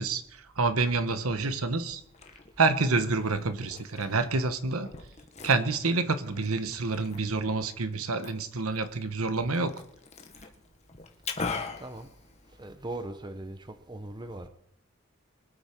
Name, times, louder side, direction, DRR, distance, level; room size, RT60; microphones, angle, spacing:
voice 1, 0.0-2.0 2.6-4.9 5.4-9.8, right 3 dB, 85° right, 1.2 m, -28 dB
Liquid, 1.9-12.9, left 4 dB, 30° left, 1.5 m, -42 dB
voice 2, 11.8-12.1 12.6-14.5, right 2 dB, 20° right, 0.9 m, -39 dB
23.5 x 8.7 x 4.6 m
head